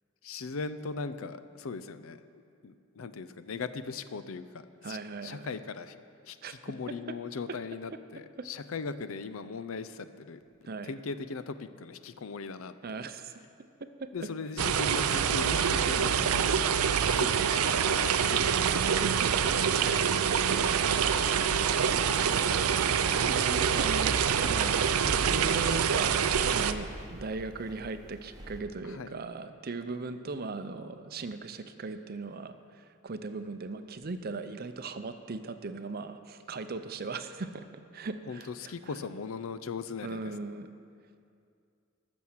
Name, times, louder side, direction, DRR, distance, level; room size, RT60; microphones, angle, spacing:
voice 1, 0.2-6.0 6.2-10.4 10.8-12.7 14.1-16.7 17.0-19.0 28.8-29.2 38.3-40.3, left 4 dB, 70° left, 12 dB, 0.5 m, -39 dB
voice 2, 4.8-5.5 6.4-6.6 7.1-7.2 8.4-8.5 10.6-10.9 12.8-13.3 14.0-14.1 19.0-19.3 19.7-20.0 20.5-37.7 37.9-39.0 40.0-40.7, right 3 dB, 45° right, 9 dB, 0.6 m, -39 dB
sound 1, 14.6-26.7, right 7 dB, 90° right, 0.5 m, -26 dB
sound 2, 20.1-28.6, equal, 20° right, 0.9 m, -45 dB
14.5 x 6.2 x 7.2 m, 2.4 s
head